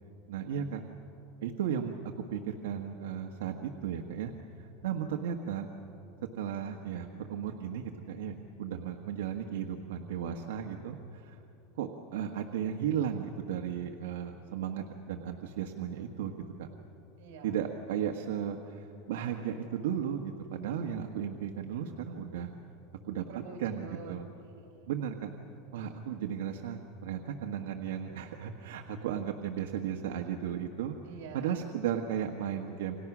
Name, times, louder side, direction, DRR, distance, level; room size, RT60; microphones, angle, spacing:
voice 1, 0.3-0.8 1.4-1.9 2.3-4.3 4.6-5.7 6.3-11.4 11.8-16.3 16.6-16.7 17.4-22.5 23.1-23.2 23.6-24.3 24.9-25.3 25.7-30.9 31.3-33.0, right 8 dB, 85° right, 2 dB, 1.4 m, -35 dB
voice 2, 17.2-17.6 23.3-24.1 24.4-24.9 31.0-31.5, right 5 dB, 60° right, 3 dB, 5.0 m, -47 dB
29.5 x 26.0 x 6.2 m, 3.0 s
supercardioid pair, 165°, 0 cm